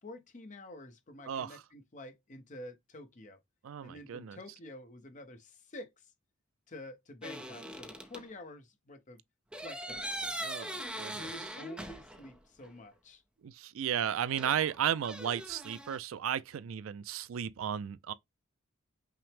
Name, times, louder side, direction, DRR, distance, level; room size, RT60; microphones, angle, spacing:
voice 1, 0.0-3.4 3.8-5.9 6.7-9.2 9.6-10.1 10.9-13.2 13.9-14.1, left 1 dB, 35° left, 0.7 m, -49 dB
voice 2, 1.3-1.6 3.6-4.4 10.4-11.3 13.4-18.1, right 9 dB, 75° right, 0.4 m, -34 dB
sound 1, 7.2-8.3 9.5-12.4 12.6-12.7 14.4-16.0, right 1 dB, 5° right, 0.5 m, -41 dB
5.7 x 2.0 x 3.3 m
head